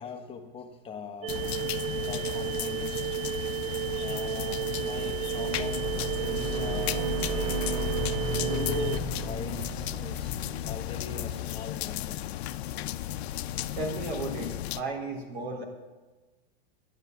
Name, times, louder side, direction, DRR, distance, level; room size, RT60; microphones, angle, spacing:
voice 1, 0.0-1.5 2.0-3.2 4.0-7.7 8.2-12.3, left 6 dB, 15° left, 5 dB, 0.9 m, -41 dB
sound 1, 1.2-9.0, right 13 dB, 25° right, 0.3 m, -33 dB
sound 2, 1.3-14.8, left 13 dB, 85° left, 0.6 m, -35 dB
sound 3, 3.8-11.6, right 1 dB, 45° right, 2.5 m, -36 dB
voice 2, 13.8-15.6, right 3 dB, 80° right, 2 dB, 3.5 m, -34 dB
11.0 x 8.1 x 9.2 m, 1.2 s
supercardioid pair, 150°, 31 cm